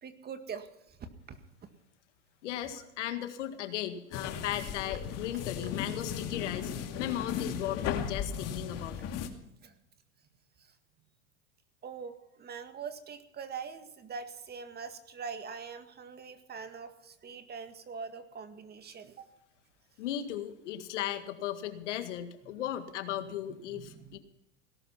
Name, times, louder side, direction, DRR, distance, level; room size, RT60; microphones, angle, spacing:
voice 1, 0.0-1.4 9.6-9.7 10.6-10.7 11.8-19.3 23.7-24.2, right 5 dB, 25° right, 9 dB, 1.9 m, -43 dB
voice 2, 2.4-9.1 20.0-24.2, left 11 dB, 80° left, 9 dB, 2.0 m, -36 dB
sound 1, 4.1-9.3, left 8 dB, 45° left, 2.3 m, -36 dB
18.0 x 12.0 x 5.9 m, 0.87 s
hypercardioid pair, 110°, 36 cm